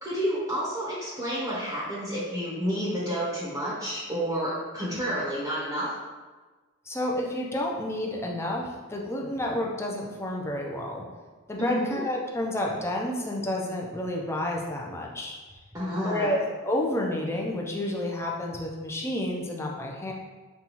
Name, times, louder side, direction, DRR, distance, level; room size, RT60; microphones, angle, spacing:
voice 1, 0.0-5.9 11.6-12.0 15.7-16.4, equal, 15° right, -8 dB, 0.8 m, -30 dB
voice 2, 6.9-11.1 11.5-15.6 16.0-20.1, left 1 dB, 10° left, -1 dB, 0.5 m, -30 dB
5.4 x 2.3 x 2.9 m, 1.3 s
head